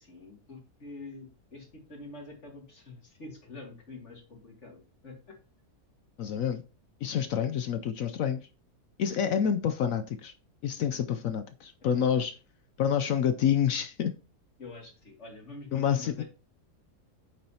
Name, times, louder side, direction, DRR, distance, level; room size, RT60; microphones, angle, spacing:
voice 1, 0.0-5.4 11.9-12.3 14.6-16.2, left 3 dB, 45° left, 2.9 m, -46 dB
voice 2, 6.2-6.6 7.0-8.4 9.0-10.3 10.6-12.3 12.8-14.1 15.7-16.2, left 8 dB, 65° left, 0.9 m, -28 dB
8.7 x 7.2 x 2.8 m
omnidirectional pair, 1.7 m